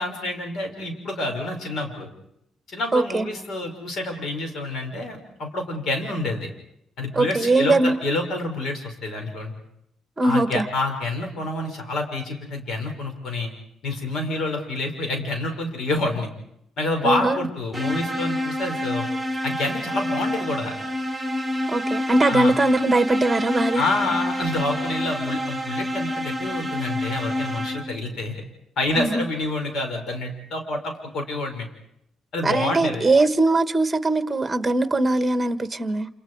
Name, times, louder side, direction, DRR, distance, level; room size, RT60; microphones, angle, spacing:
voice 1, 0.0-2.1 2.7-6.5 7.0-9.5 10.2-13.5 13.8-16.3 16.8-19.0 19.4-20.7 22.2-22.5 23.8-28.3 28.8-31.7 32.3-33.0, left 2 dB, 70° left, 5.9 m, -28 dB
voice 2, 2.9-3.3 7.1-8.0 10.2-10.7 17.0-17.5 21.7-23.8 29.0-29.3 32.4-36.1, right 2 dB, 20° right, 1.5 m, -21 dB
sound 1, 17.7-28.1, left 1 dB, 5° left, 4.2 m, -28 dB
28.5 x 28.0 x 4.9 m
cardioid pair, 90°, 0 cm